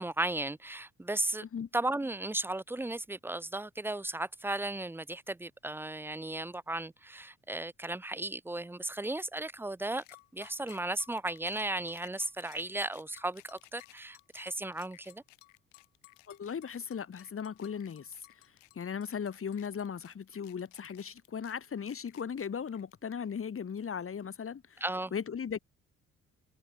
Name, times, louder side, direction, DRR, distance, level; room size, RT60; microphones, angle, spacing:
voice 1, 0.0-1.4 1.7-10.0 10.3-15.2 24.8-25.1, right 2 dB, 5° right, 0.6 m, -35 dB
voice 2, 1.4-1.7 16.3-24.8 25.1-25.6, left 7 dB, 35° left, 1.6 m, -38 dB
sound 1, 10.0-23.4, left 21 dB, 80° left, 2.5 m, -57 dB
hypercardioid pair, 45°, 37 cm